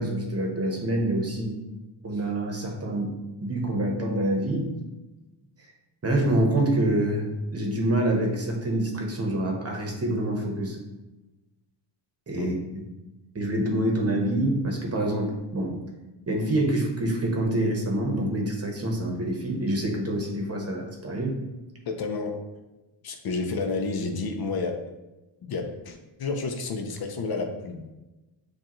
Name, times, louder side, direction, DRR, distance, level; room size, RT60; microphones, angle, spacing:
voice 1, 0.0-1.5 2.0-3.1 3.4-4.7 6.0-10.8 12.3-12.9 13.3-15.8 16.3-21.4, right 1 dB, 30° right, 1 dB, 0.9 m, -26 dB
voice 2, 21.9-22.4 23.0-24.8 25.4-27.9, left 4 dB, 50° left, 4 dB, 0.6 m, -30 dB
7.1 x 2.4 x 3.0 m, 1.1 s
cardioid pair, 110°, 47 cm